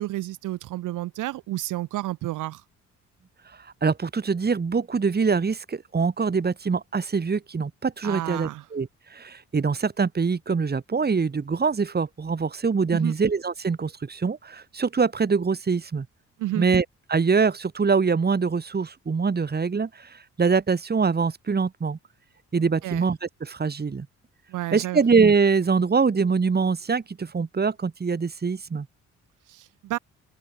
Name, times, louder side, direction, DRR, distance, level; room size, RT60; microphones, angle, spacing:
voice 1, 0.0-2.6 8.0-8.6 12.9-13.1 16.4-16.7 22.8-23.0 24.5-25.0 29.5-30.0, right 16 dB, 90° right, 7.9 m, -31 dB
voice 2, 3.6-16.1 16.5-22.0 22.5-24.1 24.7-28.9, right 5 dB, 30° right, 4.2 m, -24 dB
open air
cardioid pair, 90°, 30 cm